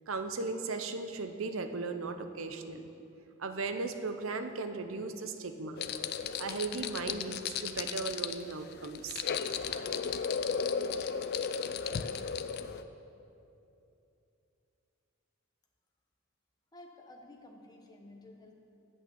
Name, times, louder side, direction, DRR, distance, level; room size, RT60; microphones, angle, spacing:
voice 1, 0.1-2.9 3.4-5.8 6.4-9.2, right 3 dB, 70° right, 7 dB, 0.7 m, -37 dB
sound 1, 5.8-12.8, left 6 dB, 45° left, 0.4 m, -35 dB
voice 2, 16.7-18.5, left 2 dB, 20° left, 1 dB, 1.0 m, -52 dB
8.5 x 8.4 x 7.0 m, 2.8 s
head